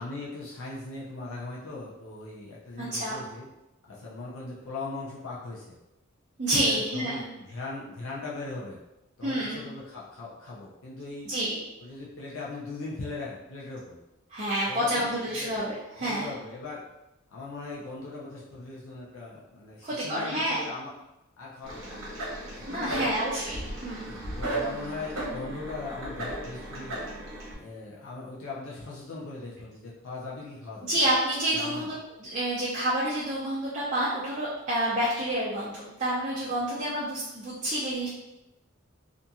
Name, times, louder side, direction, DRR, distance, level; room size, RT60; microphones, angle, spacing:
voice 1, 0.0-3.5 3.9-5.8 6.6-8.8 9.2-11.3 11.8-14.0 14.6-15.5 16.0-16.9 17.3-20.9 21.4-22.0 22.5-23.2 24.1-27.0 27.5-30.9 31.5-31.9, left 3 dB, 70° left, -5 dB, 0.5 m, -39 dB
voice 2, 2.8-3.2 6.4-7.2 9.2-9.6 11.2-11.6 14.3-16.3 19.8-20.6 22.7-24.2 30.8-31.9 32.2-38.1, right 1 dB, 35° right, -8 dB, 0.6 m, -29 dB
sound 1, 21.6-27.5, right 1 dB, 70° right, 1.0 m, -35 dB
2.8 x 2.5 x 2.3 m, 0.94 s
head